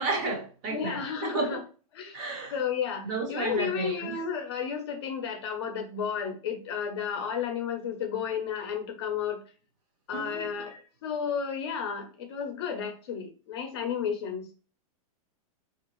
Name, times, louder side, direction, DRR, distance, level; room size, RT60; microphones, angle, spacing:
voice 1, 0.0-1.6 2.1-2.6 3.0-4.2 10.1-10.5, right 3 dB, 25° right, 0.6 m, -32 dB
voice 2, 0.7-1.6 1.9-2.2 2.5-9.4 10.1-14.5, left 7 dB, 45° left, 0.6 m, -32 dB
3.4 x 2.4 x 3.0 m
supercardioid pair, 170°, 19 cm